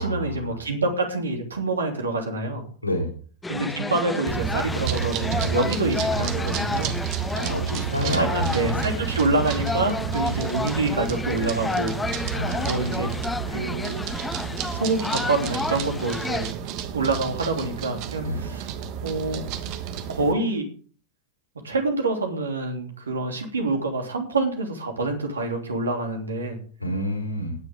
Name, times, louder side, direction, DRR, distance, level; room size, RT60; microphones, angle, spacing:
voice 1, 0.0-2.6 3.5-7.0 7.9-11.9 12.6-14.0 14.7-16.5 16.9-18.7 19.0-19.5 20.1-20.7 21.6-26.6, right 2 dB, 75° right, 3 dB, 3.0 m, -26 dB
sound 1, 3.4-16.5, left 3 dB, 10° left, 0.7 m, -31 dB
sound 2, 4.3-20.3, right 8 dB, 45° right, 1.3 m, -30 dB
voice 2, 7.4-9.0 12.3-13.1 18.2-18.4 26.8-27.6, equal, 90° left, -1 dB, 4.6 m, -28 dB
17.0 x 9.8 x 3.7 m, 0.43 s
figure-of-eight pair, 90°, 0 cm